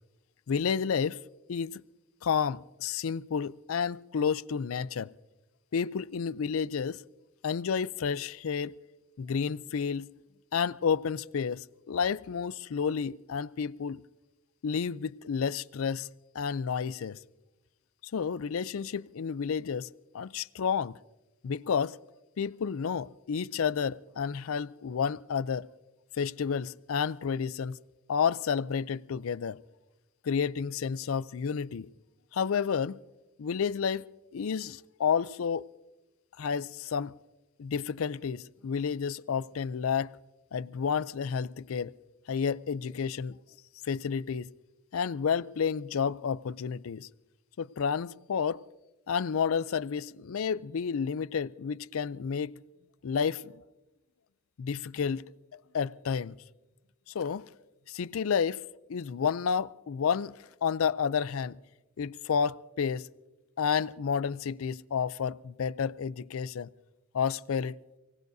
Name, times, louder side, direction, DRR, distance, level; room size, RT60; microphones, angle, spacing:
voice 1, 0.5-1.2 1.5-1.8 2.2-5.1 5.7-7.0 7.4-8.8 9.2-10.1 10.5-14.0 14.6-16.1 16.3-17.2 18.1-19.9 20.1-21.0 21.4-22.0 22.4-25.7 26.2-27.8 28.1-29.6 30.2-31.9 32.3-33.0 33.4-34.0 34.3-35.7 36.4-37.2 37.6-40.2 40.5-41.9 42.3-43.4 43.8-44.5 44.9-47.1 47.6-48.6 49.1-52.6 53.0-53.6 54.6-55.3 55.7-56.4 57.1-57.5 57.9-58.6 58.9-60.3 60.6-61.6 62.0-63.1 63.6-66.7 67.1-67.8, left 6 dB, 80° left, 0.4 m, -30 dB
29.0 x 18.5 x 2.7 m
head